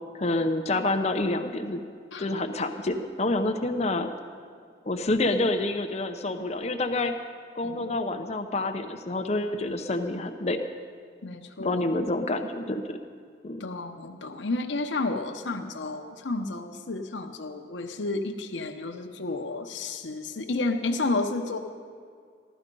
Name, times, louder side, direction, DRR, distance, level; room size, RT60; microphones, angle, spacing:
voice 1, 0.1-1.8 2.2-4.1 4.9-7.1 7.6-10.6 11.6-13.0 13.4-13.7, left 2 dB, 35° left, 7 dB, 0.7 m, -28 dB
voice 2, 2.1-2.5 7.6-7.9 11.2-11.9 13.6-21.6, left 2 dB, 80° left, 4 dB, 0.8 m, -31 dB
15.5 x 12.0 x 5.3 m, 2.2 s
head